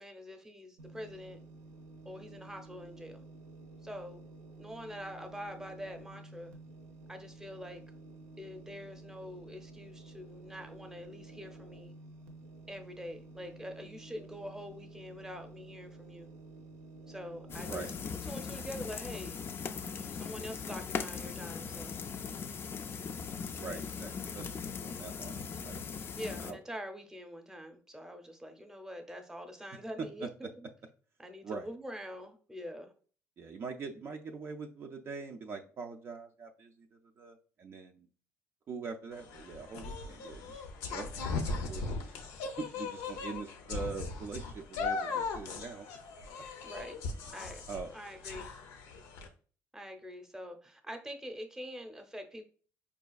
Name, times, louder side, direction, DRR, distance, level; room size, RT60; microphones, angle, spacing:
voice 1, 0.0-1.4 2.0-3.2 3.8-4.2 4.6-6.5 7.1-7.8 8.4-11.9 12.7-16.3 17.1-17.9 18.3-19.4 19.9-22.0 24.8-24.9 26.2-30.7 31.2-32.9 46.6-47.0 47.3-47.6 47.9-48.5 49.7-52.5, equal, 10° right, 5 dB, 0.7 m, -45 dB
sound 1, 0.8-18.0, right 2 dB, 80° right, 0.6 m, -51 dB
sound 2, 17.5-26.5, left 6 dB, 45° left, 0.3 m, -39 dB
voice 2, 23.6-25.8 26.4-26.6 30.0-30.3 31.4-31.7 33.4-36.9 37.2-38.1 38.7-40.5 40.9-42.1 42.6-45.9 47.7-47.9, right 4 dB, 45° right, 3 dB, 0.4 m, -43 dB
sound 3, 39.1-49.3, left 4 dB, 90° left, 0.6 m, -38 dB
4.7 x 2.4 x 2.3 m, 0.42 s
cardioid pair, 90°, 5 cm